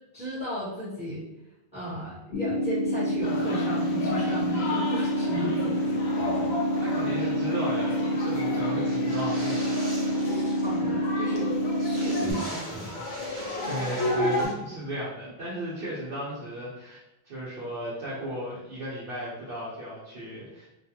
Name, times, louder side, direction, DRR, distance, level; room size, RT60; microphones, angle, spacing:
voice 1, 0.1-1.2 1.7-6.5 10.2-11.5 11.8-12.9, equal, 5° right, -10 dB, 1.0 m, -35 dB
sound 1, 2.3-12.3, equal, 90° left, 0.9 m, -27 dB
sound 2, 3.2-14.5, left 1 dB, 55° left, 0.7 m, -34 dB
voice 2, 6.8-9.6 13.6-20.7, equal, 65° right, -9 dB, 0.9 m, -35 dB
sound 3, 8.8-10.8 11.0-11.1 11.4-11.5 11.8-14.5, equal, 30° right, 1.2 m, -42 dB
2.5 x 2.3 x 2.8 m, 0.93 s
omnidirectional pair, 1.0 m